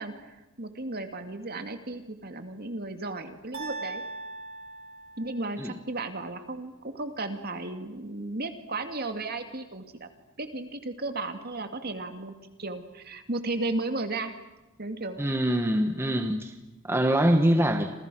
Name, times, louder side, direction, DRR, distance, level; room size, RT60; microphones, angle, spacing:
voice 1, 0.0-4.0 5.2-10.1 10.4-14.4 14.8-15.3, right 2 dB, 45° right, 7 dB, 2.3 m, -34 dB
sound 1, 3.5-5.7, right 3 dB, 60° right, 7.8 m, -39 dB
voice 2, 15.2-16.5 16.8-17.9, right 1 dB, 10° right, 6 dB, 1.3 m, -24 dB
29.5 x 27.0 x 6.3 m, 1.0 s
head